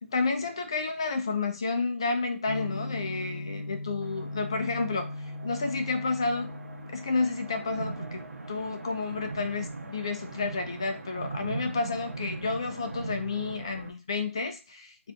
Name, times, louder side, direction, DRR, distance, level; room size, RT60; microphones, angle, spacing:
voice 1, 0.0-5.1 5.4-6.5 6.9-15.1, left 3 dB, 20° left, 6 dB, 0.3 m, -31 dB
sound 1, 2.4-12.2, left 2 dB, 45° left, 0.8 m, -41 dB
sound 2, 4.0-13.9, right 3 dB, 85° right, 0.8 m, -41 dB
2.5 x 2.5 x 3.4 m, 0.31 s
figure-of-eight pair, 170°, 8 cm